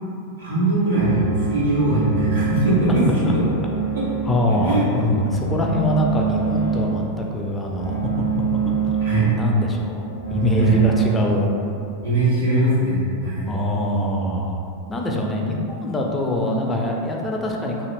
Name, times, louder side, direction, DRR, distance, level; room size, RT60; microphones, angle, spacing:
voice 1, 0.4-3.4 3.9-4.0 4.6-4.8 9.0-9.3 10.6-10.7 12.0-13.5, right 2 dB, 65° right, -8 dB, 1.1 m, -20 dB
sound 1, 1.0-11.1, right 7 dB, 85° left, 0.8 m, -26 dB
voice 2, 4.3-8.9 9.3-11.5 13.5-14.6 14.9-17.9, left 1 dB, 15° left, 0 dB, 0.3 m, -23 dB
3.2 x 2.5 x 2.4 m, 2.6 s
figure-of-eight pair, 90°, 0 cm